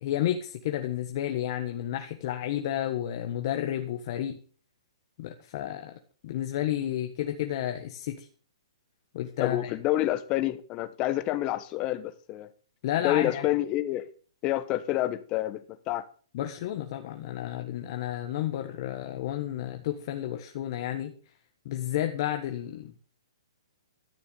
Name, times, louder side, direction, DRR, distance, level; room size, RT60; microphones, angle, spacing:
voice 1, 0.0-4.4 5.2-5.9 6.2-8.3 9.1-9.7 12.8-13.5 16.3-21.1 21.6-23.0, left 12 dB, 45° left, 1.5 m, -31 dB
voice 2, 9.4-12.5 13.0-14.0 14.4-16.0, left 14 dB, 30° left, 1.3 m, -28 dB
13.5 x 6.9 x 7.1 m
hypercardioid pair, 140°, 3 cm